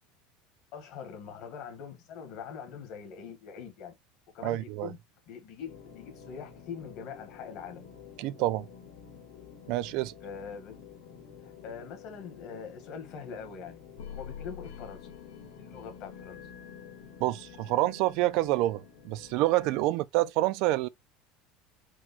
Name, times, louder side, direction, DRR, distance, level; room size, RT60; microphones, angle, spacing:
voice 1, 0.7-4.0 4.3-5.0 5.3-7.9 10.2-10.8 11.4-13.8 14.1-15.1 15.6-16.4, left 6 dB, 40° left, 1.3 m, -43 dB
voice 2, 4.4-4.9 8.2-8.7 9.7-10.1 17.2-20.9, right 17 dB, 45° right, 0.3 m, -27 dB
sound 1, 5.7-19.8, left 7 dB, 90° left, 1.9 m, -48 dB
4.6 x 2.2 x 4.0 m
cardioid pair, 180°, 0 cm